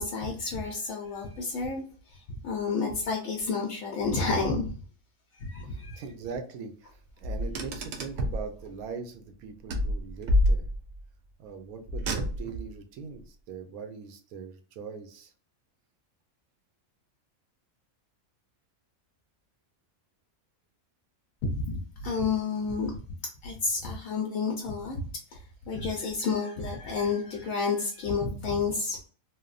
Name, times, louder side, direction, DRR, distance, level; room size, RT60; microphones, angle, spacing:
voice 1, 0.0-1.8 2.1-4.8 5.4-6.0 21.4-22.9 23.4-25.0 25.3-25.4 25.7-29.1, left 4 dB, 75° left, 1 dB, 0.9 m, -30 dB
voice 2, 5.7-10.7 11.4-15.3, right 5 dB, 90° right, 6 dB, 1.1 m, -41 dB
Car, 7.2-8.5 9.7-11.0 11.9-12.7, left 1 dB, 65° right, 0.8 m, -27 dB
3.2 x 2.1 x 2.3 m, 0.41 s
omnidirectional pair, 1.4 m